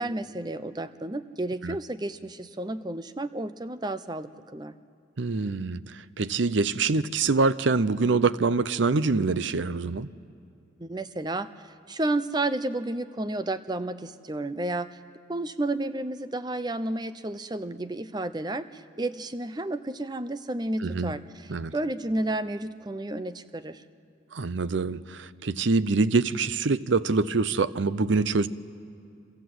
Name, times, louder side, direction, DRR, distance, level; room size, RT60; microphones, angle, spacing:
voice 1, 0.0-4.7 10.8-11.5 11.9-15.0 15.3-21.5 21.7-23.8, right 2 dB, 20° right, 12 dB, 0.6 m, -31 dB
voice 2, 5.2-10.1 20.8-21.1 21.5-21.7 24.3-28.5, right 4 dB, 70° right, 16 dB, 0.6 m, -25 dB
27.0 x 26.5 x 7.9 m, 2.5 s
head